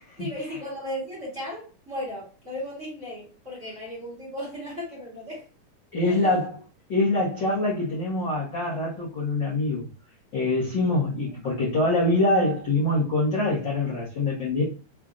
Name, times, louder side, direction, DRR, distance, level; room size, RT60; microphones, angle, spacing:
voice 1, 0.2-5.4 6.0-6.4 10.8-10.9, left 1 dB, 25° right, 2.0 m, -36 dB
voice 2, 5.9-6.6 6.9-9.9 10.3-14.6, left 2 dB, 45° left, 1.6 m, -24 dB
5.4 x 3.4 x 2.4 m
omnidirectional pair, 3.6 m